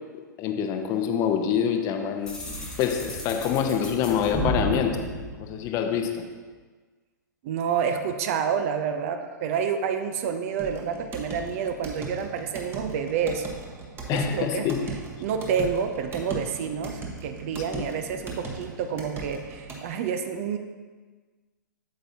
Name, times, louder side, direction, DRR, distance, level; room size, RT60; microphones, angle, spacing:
voice 1, 0.4-2.4 2.8-5.0 5.4-6.2 14.1-14.8 17.7-17.8, left 8 dB, 30° left, 5 dB, 0.8 m, -26 dB
sound 1, 2.3-6.1, equal, 5° left, 1.2 m, -33 dB
voice 2, 7.4-13.4 14.1-14.7 15.2-20.6, right 7 dB, 45° right, 7 dB, 0.6 m, -28 dB
sound 2, 10.6-19.9, right 3 dB, 20° right, 1.2 m, -38 dB
8.6 x 7.6 x 2.8 m, 1.4 s
figure-of-eight pair, 110°, 11 cm